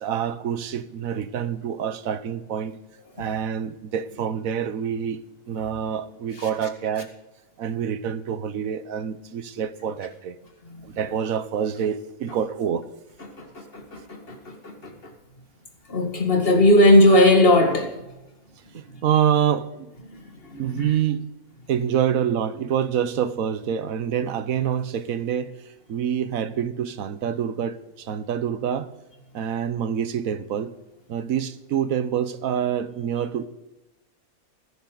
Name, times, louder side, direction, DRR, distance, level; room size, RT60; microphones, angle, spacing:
voice 1, 0.0-2.8 3.2-5.2 5.5-7.1 7.6-10.4 10.8-12.9 18.7-19.9 20.6-21.3 21.7-25.5 25.9-28.9 29.3-30.7 31.1-33.5, right 8 dB, 75° right, 13 dB, 1.3 m, -26 dB
voice 2, 13.2-15.1 15.9-17.9 18.9-19.0 20.1-20.9, left 1 dB, 40° left, 3 dB, 2.2 m, -19 dB
19.5 x 11.0 x 3.9 m, 0.98 s
omnidirectional pair, 1.5 m